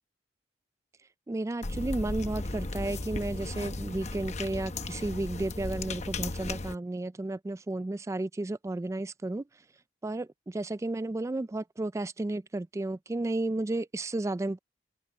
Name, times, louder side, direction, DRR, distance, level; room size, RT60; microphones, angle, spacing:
voice 1, 1.3-9.5 10.0-14.6, right 2 dB, 15° right, 0.3 m, -33 dB
sound 1, 1.6-6.7, left 2 dB, 40° left, 0.9 m, -35 dB
open air
head